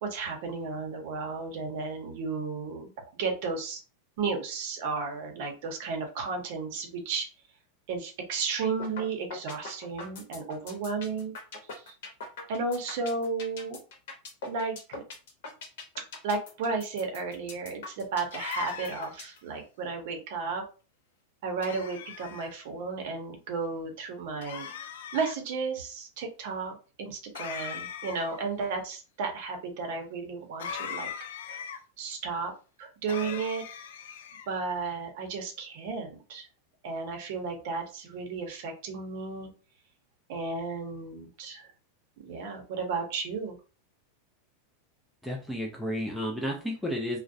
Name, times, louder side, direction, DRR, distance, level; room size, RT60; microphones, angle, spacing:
voice 1, 0.0-2.9 3.2-3.8 4.2-7.3 7.9-11.3 11.9-12.0 12.5-13.8 14.4-15.0 16.2-20.6 21.4-24.7 25.1-31.1 31.5-31.6 32.0-32.5 32.8-33.6 34.5-36.5 36.8-39.5 40.3-41.7 42.2-43.6, right 4 dB, 50° right, 3 dB, 0.7 m, -33 dB
sound 1, 8.8-9.0 9.3-19.4, left 3 dB, 60° left, 0.9 m, -41 dB
sound 2, 18.3-19.3 21.6-22.5 24.4-25.4 27.3-28.4 30.6-31.8 33.1-34.5, left 8 dB, 85° left, 0.4 m, -39 dB
voice 2, 45.2-47.2, equal, ahead, -1 dB, 0.3 m, -32 dB
2.3 x 2.0 x 2.6 m, 0.35 s
supercardioid pair, 175°, 0 cm